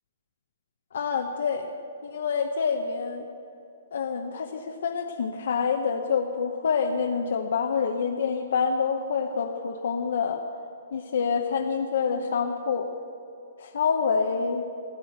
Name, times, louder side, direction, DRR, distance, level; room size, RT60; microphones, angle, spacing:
voice 1, 0.9-1.7 2.0-3.3 3.9-10.4 10.9-12.9 13.6-14.7, left 6 dB, 60° left, 3 dB, 0.9 m, -27 dB
16.5 x 8.4 x 7.7 m, 2.6 s
hypercardioid pair, 180°, 0 cm